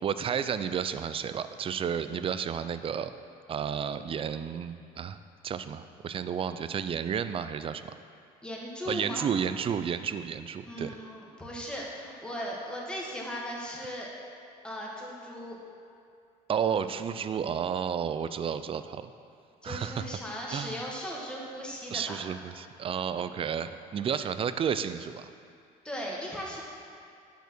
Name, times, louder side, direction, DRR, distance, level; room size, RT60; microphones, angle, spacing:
voice 1, 0.0-3.1 3.5-5.2 5.4-7.9 8.9-11.0 16.5-19.1 19.6-20.1 20.5-20.8 21.9-25.3, right 7 dB, 35° right, 12 dB, 0.3 m, -32 dB
voice 2, 1.9-2.2 8.4-9.3 10.6-14.1 14.6-15.6 19.6-22.2 25.8-26.6, equal, 5° left, -4 dB, 1.5 m, -38 dB
8.2 x 4.5 x 6.0 m, 2.4 s
cardioid pair, 110°, 17 cm